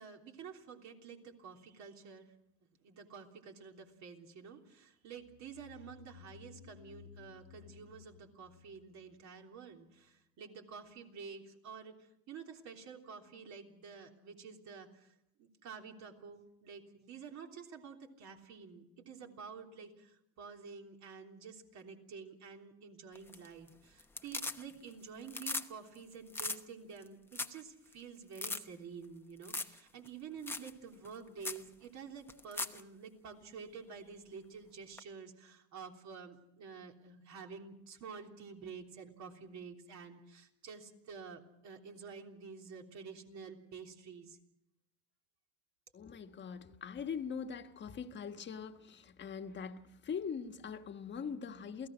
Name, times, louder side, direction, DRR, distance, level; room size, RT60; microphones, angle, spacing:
voice 1, 0.0-2.3 2.8-15.1 15.4-44.4, right 6 dB, 50° right, 3.4 m, -50 dB
sound 1, 5.2-9.7, left 10 dB, 80° left, 1.0 m, -58 dB
sound 2, 23.1-23.7 24.0-24.9 25.2-25.7 25.9-26.0 26.3-26.6 27.0-27.1 27.3-27.6 27.9-28.0 28.3-28.6 29.4-29.8 30.0-30.1 30.5-30.7 31.0-31.1 31.4-31.6 32.3-32.8 35.0-35.1, left 2 dB, 5° left, 1.0 m, -39 dB
voice 2, 45.9-51.9, left 6 dB, 30° left, 1.5 m, -42 dB
28.5 x 17.5 x 6.3 m
cardioid pair, 120°, 34 cm